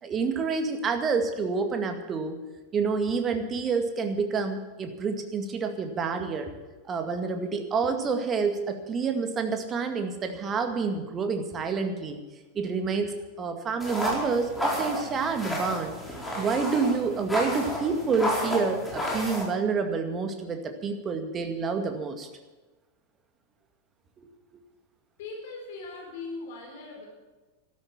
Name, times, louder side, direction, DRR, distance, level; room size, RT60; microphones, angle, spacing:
voice 1, 0.0-2.3 2.7-6.5 6.9-12.2 12.5-15.9 16.4-22.3, right 5 dB, 25° right, 6 dB, 2.1 m, -28 dB
sound 1, 13.8-19.4, equal, 5° left, 4.5 m, -31 dB
voice 2, 25.2-27.1, left 3 dB, 50° left, 1 dB, 4.6 m, -39 dB
13.0 x 13.0 x 7.5 m, 1.2 s
figure-of-eight pair, 90°, 0 cm